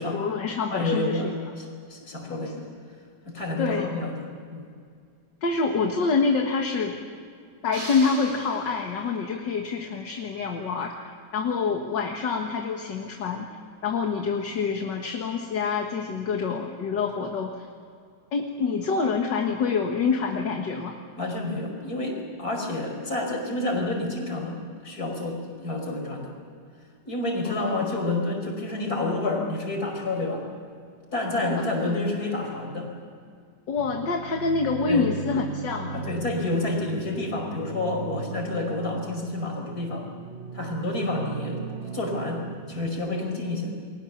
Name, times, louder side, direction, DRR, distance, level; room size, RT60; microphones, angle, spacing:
voice 1, 0.0-1.3 2.3-2.5 3.6-3.9 5.4-7.0 7.6-13.5 13.8-17.7 18.3-21.0 27.5-27.8 31.8-31.9 33.7-36.0, left 4 dB, 70° left, 2 dB, 2.3 m, -26 dB
voice 2, 0.7-2.7 3.3-4.2 4.5-4.7 21.2-26.3 27.1-30.4 31.1-32.9 34.9-35.1 35.9-40.1 40.5-41.6 41.9-43.7, left 2 dB, 50° left, 2 dB, 5.6 m, -29 dB
sound 1, 7.7-9.3, right 1 dB, 70° right, 5.7 m, -39 dB
sound 2, 33.8-42.9, right 5 dB, 35° right, 1.0 m, -38 dB
30.0 x 22.5 x 7.2 m, 2.2 s
omnidirectional pair, 2.0 m